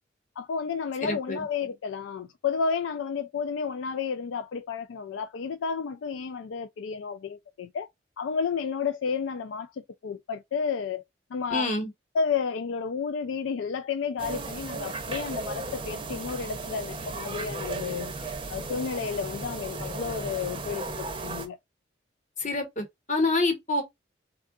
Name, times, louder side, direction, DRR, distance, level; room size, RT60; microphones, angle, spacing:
voice 1, 0.4-7.9 8.2-11.0 11.3-11.7 12.1-18.1 18.5-21.6, left 6 dB, 80° left, 0.3 m, -31 dB
voice 2, 1.0-1.4 11.5-11.9 22.4-23.8, left 2 dB, 40° left, 1.0 m, -27 dB
sound 1, 14.2-21.5, right 3 dB, 25° right, 0.5 m, -35 dB
3.6 x 2.3 x 2.4 m
head